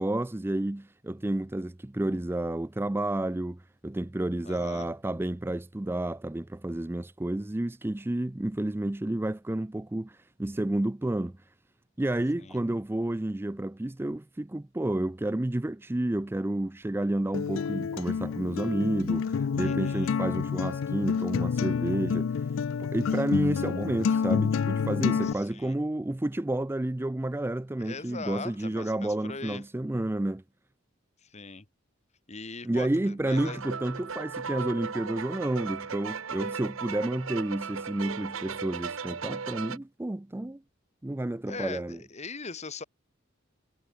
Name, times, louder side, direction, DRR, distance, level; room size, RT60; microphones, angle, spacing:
voice 1, 0.0-11.4 12.0-22.3 22.8-30.4 32.6-40.6 41.0-42.0, right 1 dB, 10° right, 0.4 m, -30 dB
voice 2, 4.4-4.9 12.4-12.6 19.6-20.2 25.2-25.8 27.8-29.6 31.2-31.7 32.3-33.6 41.5-42.8, left 4 dB, 35° left, 1.8 m, -40 dB
Acoustic guitar, 17.3-25.3, left 6 dB, 70° left, 0.4 m, -28 dB
sound 1, 33.2-39.8, right 5 dB, 80° right, 1.0 m, -37 dB
head